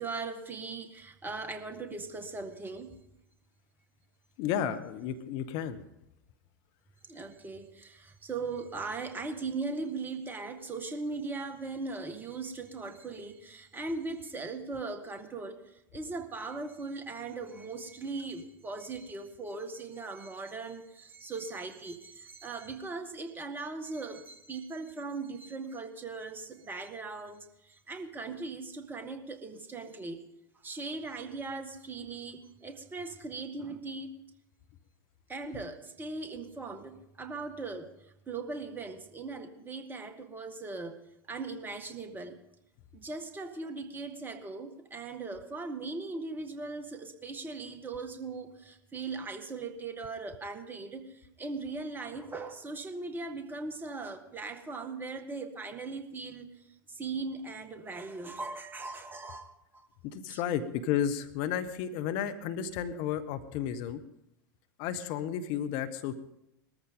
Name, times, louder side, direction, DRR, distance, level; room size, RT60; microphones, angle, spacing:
voice 1, 0.0-3.0 7.1-15.6 15.9-30.2 30.6-34.2 35.3-37.9 38.3-41.0 41.3-42.4 42.9-56.5 56.9-59.9 60.3-60.4, right 3 dB, 15° right, 7 dB, 1.8 m, -39 dB
voice 2, 4.4-5.8 60.0-64.0 64.8-66.1, left 9 dB, 45° left, 10 dB, 1.1 m, -32 dB
20.5 x 14.0 x 3.8 m, 0.85 s
figure-of-eight pair, 85°, 11 cm